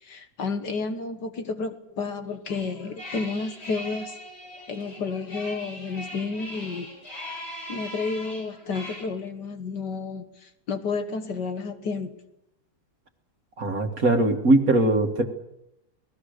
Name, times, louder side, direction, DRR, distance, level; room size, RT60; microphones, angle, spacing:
voice 1, 0.0-4.2 4.7-6.9 7.7-12.1, left 4 dB, 55° left, 8 dB, 1.9 m, -31 dB
sound 1, 2.5-9.0, equal, 75° left, 9.0 m, -40 dB
voice 2, 13.6-15.2, right 2 dB, 45° right, 5 dB, 2.2 m, -21 dB
29.0 x 19.0 x 6.7 m, 0.86 s
omnidirectional pair, 2.2 m